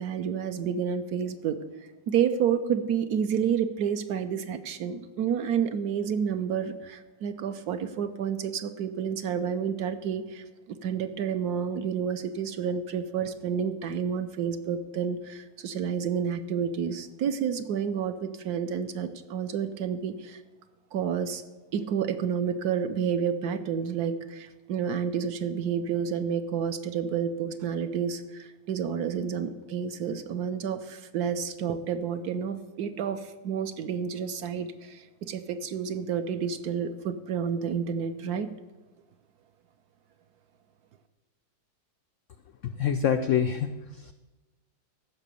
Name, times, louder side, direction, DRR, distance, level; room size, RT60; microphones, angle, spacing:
voice 1, 0.0-1.6 2.1-20.4 20.9-21.4 21.7-38.5, right 7 dB, 65° right, 9 dB, 1.1 m, -30 dB
voice 2, 42.6-44.1, left 8 dB, 80° left, 7 dB, 0.6 m, -26 dB
14.0 x 5.8 x 6.9 m, 1.1 s
omnidirectional pair, 1.9 m